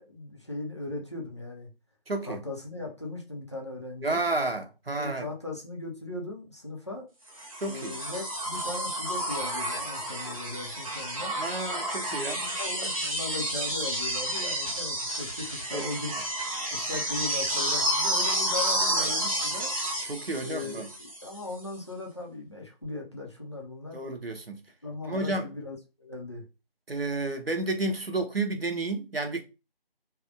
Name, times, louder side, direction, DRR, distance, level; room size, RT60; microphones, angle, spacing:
voice 1, 0.0-1.7 2.3-4.3 5.0-7.1 7.6-11.4 12.3-16.2 16.7-19.7 20.4-24.0 24.8-26.4, left 2 dB, 30° left, 0.7 m, -38 dB
voice 2, 2.1-2.4 4.0-5.3 7.6-7.9 11.4-12.4 15.7-15.9 20.1-20.9 23.9-24.6 25.1-25.5 26.9-29.4, right 2 dB, 75° right, 1.0 m, -31 dB
sound 1, 7.4-21.4 22.8-22.9, right 1 dB, 35° right, 1.1 m, -30 dB
3.4 x 2.2 x 3.7 m
figure-of-eight pair, 165°, 30 cm